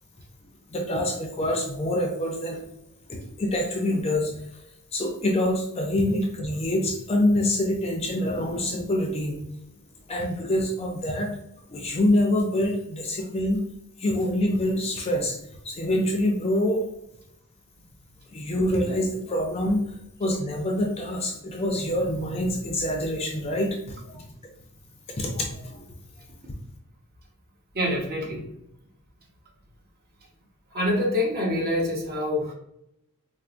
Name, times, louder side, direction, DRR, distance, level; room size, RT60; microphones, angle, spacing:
voice 1, 0.7-2.6 3.1-4.4 4.9-9.4 10.1-11.3 11.7-13.6 14.0-15.4 15.6-16.8 18.3-19.8 20.2-24.2 25.2-25.8, left 1 dB, 30° left, 1 dB, 0.5 m, -25 dB
voice 2, 27.7-28.5 30.7-32.5, left 1 dB, 45° right, -1 dB, 0.8 m, -26 dB
4.4 x 2.1 x 2.5 m, 0.79 s
head